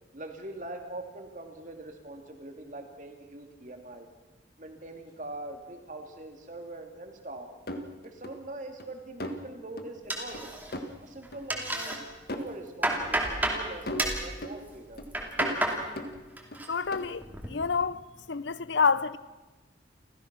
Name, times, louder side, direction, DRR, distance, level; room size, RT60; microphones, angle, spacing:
voice 1, 0.1-4.1 4.6-7.5 8.0-10.6 11.0-12.0 12.3-15.0, right 2 dB, 40° right, 2.7 m, -43 dB
sound 1, 7.7-8.3 8.8-8.9 9.2-9.5 9.8-9.9 10.3-10.4 10.7-10.9 11.3-11.4 11.9-12.0 12.3-12.5 12.9-13.0 13.5-13.6 13.9-14.6 15.0-15.1 15.4-16.6 16.9-17.0, left 1 dB, 55° left, 1.7 m, -38 dB
sound 2, 10.1-10.9 11.2-12.0 12.4-13.6 14.0-14.3 14.9-15.8 16.2-16.7 17.0-17.5, right 1 dB, 10° right, 2.7 m, -30 dB
voice 2, 16.7-18.0 18.3-19.2, left 5 dB, 70° left, 0.7 m, -28 dB
29.5 x 15.0 x 6.2 m
head